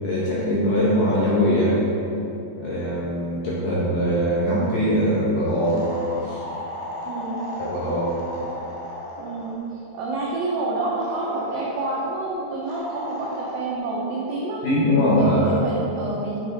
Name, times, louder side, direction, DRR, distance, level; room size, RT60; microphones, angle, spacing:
voice 1, 0.0-1.8 2.6-5.8 6.2-6.4 7.7-8.1 14.6-15.5, equal, 65° left, -8 dB, 2.1 m, -21 dB
sound 1, 5.6-9.6 11.0-12.2 12.7-13.6, left 1 dB, 85° left, 1.8 m, -35 dB
voice 2, 7.0-7.5 9.2-14.6 15.2-16.5, right 2 dB, 85° right, -6 dB, 2.0 m, -28 dB
8.7 x 6.0 x 4.1 m, 2.9 s
omnidirectional pair, 5.5 m